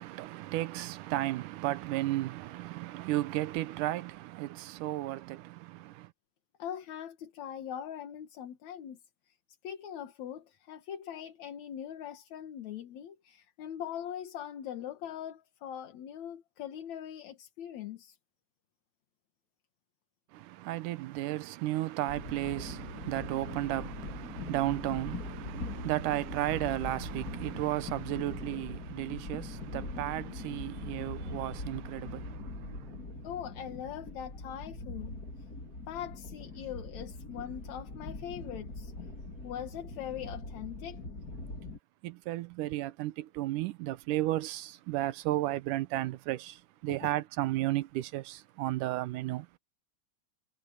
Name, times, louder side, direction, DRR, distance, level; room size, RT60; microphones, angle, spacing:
voice 1, 0.0-6.1 20.3-33.2 42.0-49.6, right 16 dB, 80° right, 2.2 m, -34 dB
voice 2, 6.6-9.0 9.3-9.4 9.6-18.2 33.2-35.2 35.9-39.1 39.4-41.1 47.0-47.1, left 9 dB, 60° left, 2.6 m, -41 dB
sound 1, 22.1-41.8, left 2 dB, 25° left, 3.5 m, -42 dB
omnidirectional pair, 3.9 m